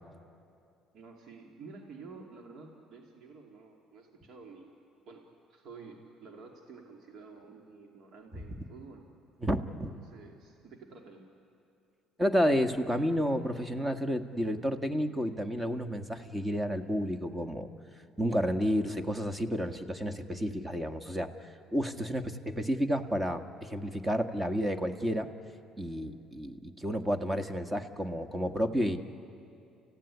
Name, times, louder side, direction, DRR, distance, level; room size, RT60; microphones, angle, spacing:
voice 1, 0.9-4.7 5.1-9.0 9.9-11.3, right 4 dB, 65° right, 1 dB, 2.7 m, -50 dB
voice 2, 9.4-9.9 12.2-17.7 18.2-25.3 25.8-29.0, equal, 15° right, 8 dB, 1.7 m, -31 dB
29.5 x 15.5 x 9.9 m, 2.5 s
supercardioid pair, 80°, 0 cm